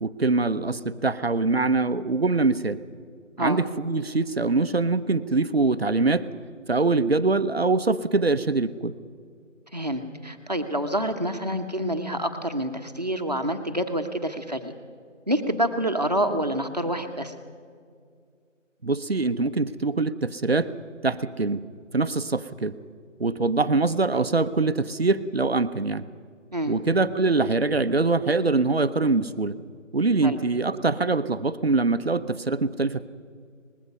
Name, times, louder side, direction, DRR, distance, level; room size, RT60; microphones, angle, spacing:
voice 1, 0.0-2.8 3.4-6.3 6.7-8.9 18.8-20.7 21.0-21.6 21.9-22.8 23.2-26.1 26.7-29.6 29.9-33.1, right 3 dB, 50° right, 12 dB, 0.8 m, -23 dB
voice 2, 9.7-14.7 15.3-17.3 26.5-26.8 30.2-30.4, right 1 dB, 30° right, 6 dB, 1.1 m, -27 dB
24.0 x 20.5 x 5.4 m, 2.2 s
figure-of-eight pair, 180°, 38 cm